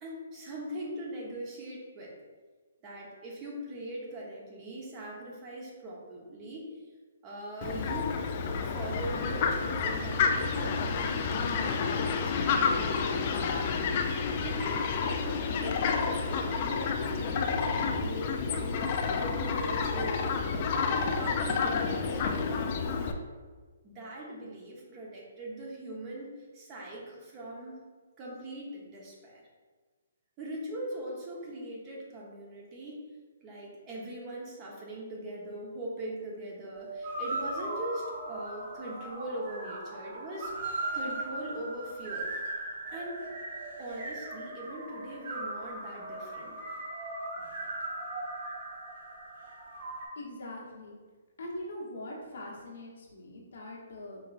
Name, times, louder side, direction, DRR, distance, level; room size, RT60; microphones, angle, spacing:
voice 1, 0.0-2.1 2.8-6.7 7.2-8.1 8.6-13.6 14.4-20.5 20.9-23.1 23.8-26.3 26.5-27.7 28.2-29.4 30.4-33.0 33.4-40.5 40.9-42.3 42.9-43.2 43.8-46.6, right 1 dB, 30° right, -3 dB, 1.0 m, -41 dB
Fowl, 7.6-23.1, left 5 dB, 40° left, 0.4 m, -30 dB
sound 1, 36.7-50.0, right 2 dB, 45° right, 1.4 m, -38 dB
voice 2, 50.2-51.0 51.4-54.2, left 1 dB, 65° left, -3 dB, 1.1 m, -42 dB
5.2 x 2.9 x 2.5 m, 1.4 s
hypercardioid pair, 140°, 0 cm